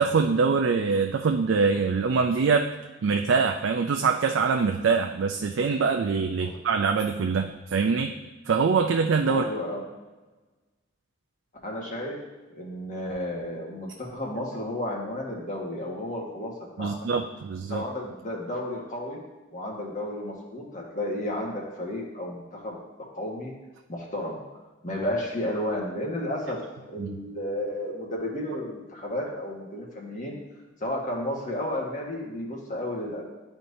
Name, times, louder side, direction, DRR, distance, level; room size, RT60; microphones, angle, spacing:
voice 1, 0.0-2.7 3.0-8.2 8.5-9.4 16.8-17.8 27.0-27.2, right 5 dB, 70° right, 4 dB, 0.4 m, -24 dB
voice 2, 9.3-9.8 11.6-12.2 12.5-16.5 16.8-16.9 17.7-19.2 19.5-22.7 23.1-23.5 23.9-24.4 24.8-26.6 26.9-30.3 30.8-33.2, left 1 dB, 40° left, -2 dB, 1.4 m, -32 dB
11.0 x 4.4 x 2.7 m, 1.2 s
head